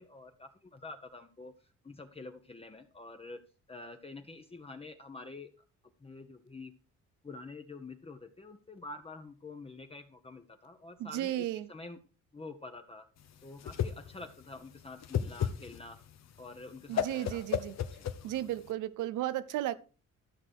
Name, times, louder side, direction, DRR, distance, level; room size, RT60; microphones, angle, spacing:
voice 1, 0.0-1.5 1.8-3.4 3.7-5.5 6.0-6.7 7.2-12.0 12.3-13.1 13.4-16.0 16.4-17.4 17.9-18.0, left 3 dB, 20° left, 1.0 m, -47 dB
voice 2, 11.0-11.7 16.9-17.8 18.2-19.8, right 13 dB, 85° right, 0.8 m, -34 dB
Whoosh swoosh swish, 13.2-18.7, left 9 dB, 60° left, 1.1 m, -35 dB
12.5 x 6.1 x 4.8 m
cardioid pair, 90°, 30 cm